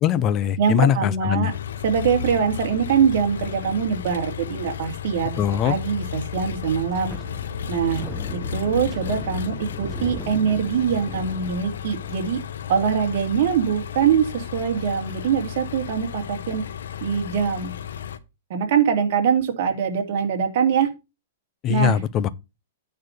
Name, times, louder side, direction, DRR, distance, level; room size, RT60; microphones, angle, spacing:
voice 1, 0.0-1.5 5.4-5.7 21.6-22.3, left 10 dB, 25° left, 0.6 m, -21 dB
voice 2, 0.6-1.5 1.8-7.1 7.7-8.0 8.5-12.4 12.7-16.6 17.0-17.7 18.5-20.9 21.7-22.0, right 7 dB, 50° right, 2.6 m, -23 dB
Engine, 1.5-18.2, left 8 dB, 85° left, 1.0 m, -33 dB
Wind, 6.5-12.1, right 2 dB, 5° right, 0.9 m, -38 dB
9.5 x 4.2 x 6.6 m
hypercardioid pair, 160°, 0 cm